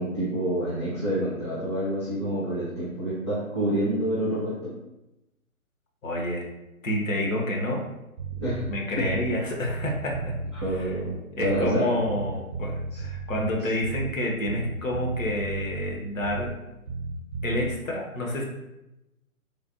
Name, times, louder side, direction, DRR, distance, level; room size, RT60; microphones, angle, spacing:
voice 1, 0.0-4.7 8.4-8.7 9.0-9.1 10.5-11.9 12.9-13.0 13.6-13.7, right 1 dB, 20° left, -12 dB, 0.4 m, -28 dB
voice 2, 6.0-6.4 6.8-7.8 8.7-10.3 10.7-10.9 11.3-16.5 17.4-18.4, left 1 dB, 65° left, 0 dB, 0.8 m, -28 dB
Bass guitar, 8.2-9.4 9.7-11.8 12.1-14.2 14.5-16.6 16.9-17.7, right 4 dB, 70° right, 0.5 m, -34 dB
3.2 x 2.0 x 2.5 m, 0.94 s
hypercardioid pair, 150°, 43 cm